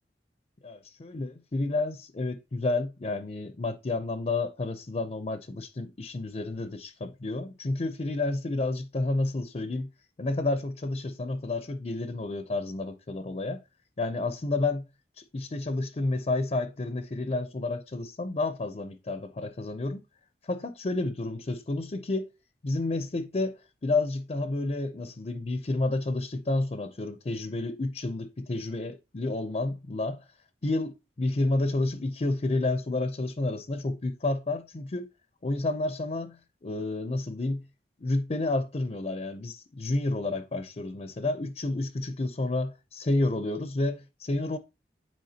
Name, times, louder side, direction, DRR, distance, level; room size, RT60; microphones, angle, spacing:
voice 1, 0.6-9.9 10.2-13.6 14.0-14.9 15.2-20.0 20.4-22.3 22.6-30.2 30.6-35.1 35.4-37.6 38.0-44.6, left 2 dB, 35° left, 0.5 m, -30 dB
9.3 x 4.5 x 2.8 m
head